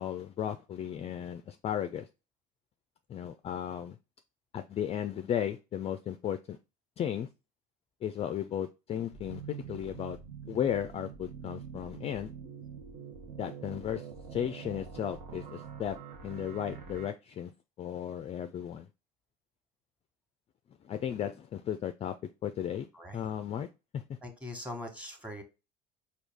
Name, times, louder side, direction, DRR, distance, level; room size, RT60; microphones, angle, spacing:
voice 1, 0.0-2.1 3.1-4.0 4.5-6.6 7.0-7.3 8.0-10.2 10.5-12.3 13.4-16.0 16.2-17.5 17.8-18.9 20.8-22.2 22.4-23.7 23.9-24.0, left 9 dB, 30° left, 9 dB, 0.3 m, -35 dB
sound 1, 9.1-17.1, right 7 dB, 75° right, 0.8 m, -45 dB
voice 2, 22.9-23.3 24.2-25.4, left 1 dB, 5° right, 4 dB, 1.2 m, -42 dB
4.6 x 2.4 x 3.4 m, 0.28 s
hypercardioid pair, 75°, 21 cm